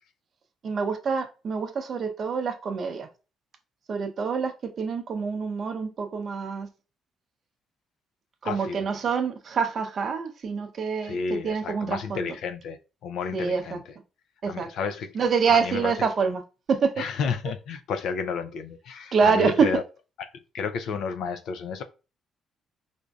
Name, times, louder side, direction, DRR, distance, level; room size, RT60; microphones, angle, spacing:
voice 1, 0.6-3.1 3.9-6.7 8.4-12.3 13.3-13.8 14.4-14.7 15.1-16.4 16.7-16.9 19.1-19.7, right 5 dB, 45° right, 0.6 m, -26 dB
voice 2, 8.4-8.9 11.0-13.9 14.5-15.2 15.5-15.9 17.0-19.8 20.3-21.8, left 5 dB, 75° left, 0.3 m, -31 dB
4.9 x 2.6 x 2.3 m
cardioid pair, 115°, 0 cm